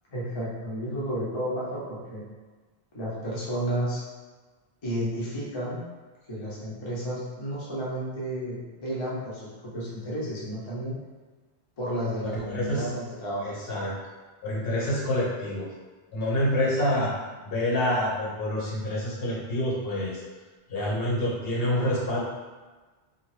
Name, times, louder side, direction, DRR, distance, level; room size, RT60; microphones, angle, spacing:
voice 1, 0.1-2.2 2.9-4.0 4.8-5.8 6.3-11.0 11.8-13.5, right 1 dB, 30° left, -7 dB, 0.6 m, -32 dB
voice 2, 12.3-12.9 13.4-13.9 14.4-15.7 16.1-17.1 17.4-20.2 20.7-22.2, left 1 dB, 65° left, -5 dB, 1.0 m, -27 dB
2.7 x 2.1 x 3.1 m, 1.3 s
omnidirectional pair, 1.1 m